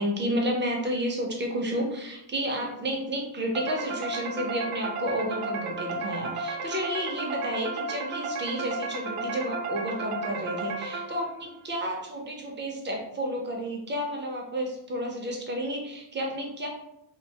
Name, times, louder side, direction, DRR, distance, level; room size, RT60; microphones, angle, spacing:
voice 1, 0.0-16.7, equal, 25° right, 0 dB, 0.3 m, -31 dB
sound 1, 3.5-11.4, right 3 dB, 85° right, 0.6 m, -33 dB
2.3 x 2.2 x 2.6 m, 0.83 s
cardioid pair, 140°, 48 cm